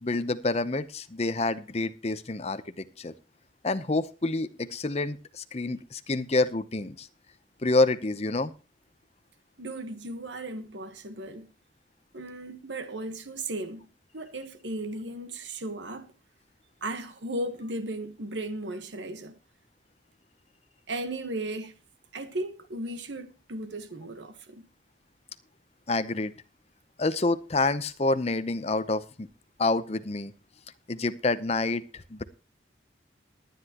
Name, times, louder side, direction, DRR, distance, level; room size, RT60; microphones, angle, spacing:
voice 1, 0.0-3.1 3.6-7.1 7.6-8.5 25.9-26.3 27.0-29.3 29.6-30.3 30.9-32.2, left 2 dB, 35° left, 0.7 m, -28 dB
voice 2, 9.6-11.5 12.1-13.8 14.1-16.1 16.8-19.3 20.9-21.7 22.1-24.7, right 1 dB, 70° right, 1.3 m, -36 dB
19.5 x 9.9 x 2.9 m
head